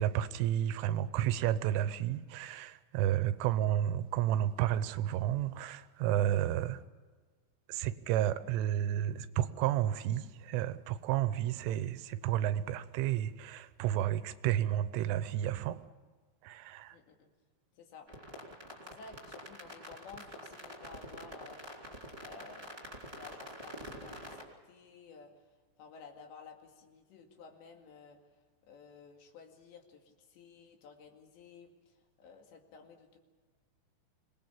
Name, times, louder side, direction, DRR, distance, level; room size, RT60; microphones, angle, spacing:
voice 1, 0.0-6.8 7.7-15.8 16.4-17.0, right 11 dB, 80° right, 13 dB, 3.2 m, -31 dB
voice 2, 16.9-17.3 17.7-18.1 18.8-24.4 24.6-28.2 28.7-33.2, left 5 dB, 65° left, 3 dB, 4.3 m, -54 dB
sound 1, 18.1-24.4, equal, 10° right, 3.1 m, -47 dB
26.5 x 19.5 x 7.2 m, 1.4 s
omnidirectional pair, 5.7 m